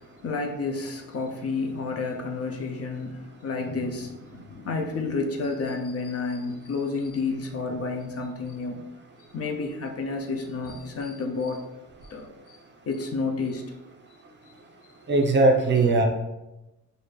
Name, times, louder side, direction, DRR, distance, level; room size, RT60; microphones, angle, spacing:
voice 1, 0.0-8.9 9.3-11.6 12.1-12.6 12.9-13.8, left 3 dB, 50° left, 0.7 m, -30 dB
voice 2, 15.1-16.0, right 2 dB, 35° right, 0.7 m, -19 dB
4.3 x 2.6 x 3.2 m
cardioid pair, 90°, 30 cm